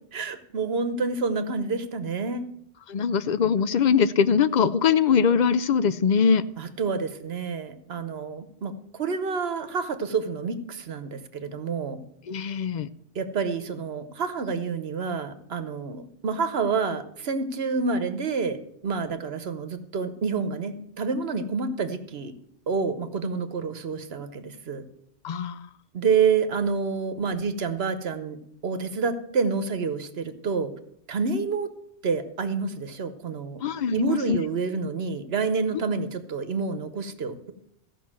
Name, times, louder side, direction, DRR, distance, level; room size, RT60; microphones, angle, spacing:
voice 1, 0.1-2.4 6.6-12.0 13.1-18.6 18.8-22.3 22.7-24.8 25.9-30.7 31.1-31.7 32.0-33.6 33.9-37.5, right 5 dB, 60° right, 11 dB, 1.1 m, -28 dB
voice 2, 2.9-6.4 12.3-12.9 25.2-25.7 33.6-34.4, left 6 dB, 55° left, 14 dB, 0.5 m, -22 dB
14.5 x 5.8 x 7.4 m, 0.73 s
omnidirectional pair, 1.2 m